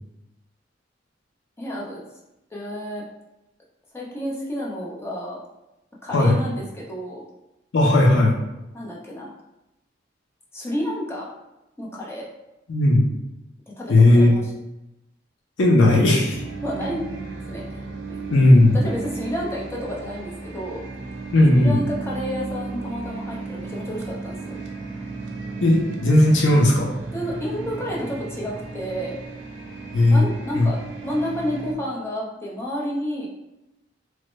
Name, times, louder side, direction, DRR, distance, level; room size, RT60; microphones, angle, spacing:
voice 1, 1.6-2.0 2.5-3.0 3.9-5.4 6.0-7.2 8.7-9.3 10.5-11.3 11.8-12.2 13.8-14.5 16.6-17.0 17.5-18.2 18.7-20.8 21.5-24.6 27.1-29.2 30.1-30.8 31.0-33.3, equal, 15° left, -4 dB, 0.6 m, -30 dB
voice 2, 7.7-8.4 12.7-13.1 13.9-14.3 15.6-16.4 18.3-18.8 21.3-21.8 25.6-26.9 29.9-30.2 30.6-30.7, left 1 dB, 80° left, -2 dB, 0.5 m, -16 dB
sound 1, 16.3-31.7, right 3 dB, 75° right, 0.5 m, -35 dB
3.0 x 2.1 x 3.0 m, 0.93 s
head